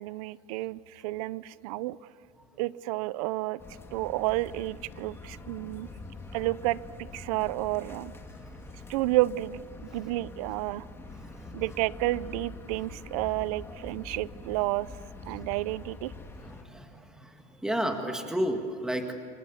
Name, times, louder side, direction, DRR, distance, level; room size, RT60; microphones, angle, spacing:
voice 1, 0.0-2.0 2.6-3.6 3.9-5.9 6.3-6.8 7.1-8.1 8.9-9.6 9.9-10.9 11.5-14.9 15.2-16.1, right 18 dB, 80° right, 20 dB, 0.6 m, -30 dB
sound 1, 3.6-16.6, left 3 dB, 15° left, 2.1 m, -45 dB
voice 2, 11.2-11.6 16.4-19.2, equal, 5° right, 4 dB, 1.9 m, -33 dB
29.0 x 23.5 x 7.1 m, 2.3 s
cardioid pair, 145°, 19 cm